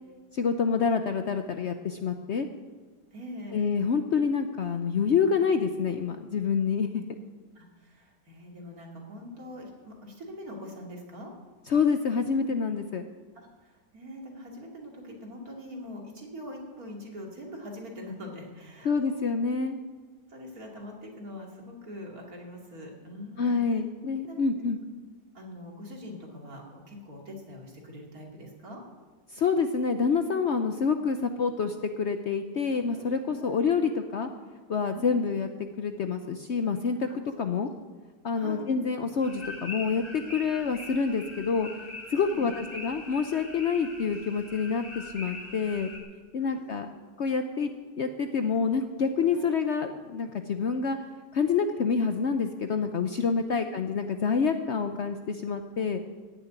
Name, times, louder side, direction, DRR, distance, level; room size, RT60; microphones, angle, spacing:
voice 1, 0.3-2.5 3.5-7.0 11.7-13.0 18.8-19.8 23.4-24.8 29.3-34.3 34.7-35.5 35.8-37.1 37.4-37.7 38.2-41.7 42.1-45.9 46.3-46.9 47.2-47.7 48.0-51.0 51.3-56.0, left 5 dB, 55° left, 7 dB, 0.8 m, -27 dB
voice 2, 3.1-3.6 7.5-11.3 13.3-19.6 20.3-23.6 24.2-24.4 25.3-28.8 32.9-33.1 33.4-33.5 34.9-35.4 37.0-37.2 38.3-38.7 42.2-42.5 46.4-46.9 49.3-49.6, left 1 dB, 60° right, -1 dB, 3.1 m, -43 dB
sound 1, 39.2-46.0, left 2 dB, 15° left, 3.1 m, -42 dB
15.5 x 7.0 x 9.4 m, 1.4 s
omnidirectional pair, 1.7 m